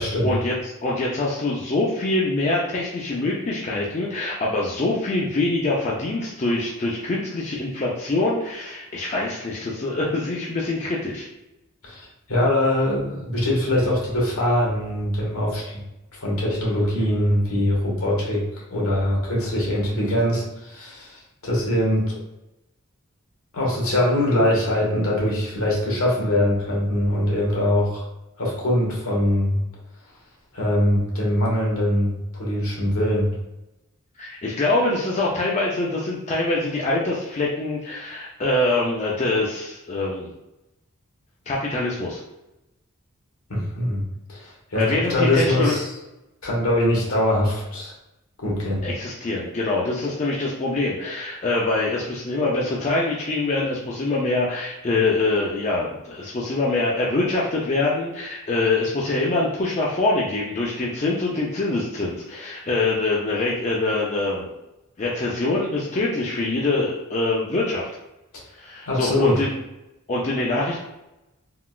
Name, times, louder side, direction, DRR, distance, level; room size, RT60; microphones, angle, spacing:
voice 1, 0.0-11.3 34.2-40.3 41.5-42.2 44.7-45.8 48.8-64.5 65.0-67.9 68.5-69.5 70.1-70.8, left 2 dB, 30° left, -4 dB, 0.4 m, -24 dB
voice 2, 11.8-15.8 16.1-18.4 18.7-22.2 23.5-28.0 28.4-29.6 30.5-33.3 43.5-44.0 44.3-45.9 46.4-47.9 48.4-48.8 68.9-69.4, left 1 dB, 75° left, -4 dB, 1.2 m, -22 dB
3.6 x 2.3 x 2.3 m, 0.94 s
head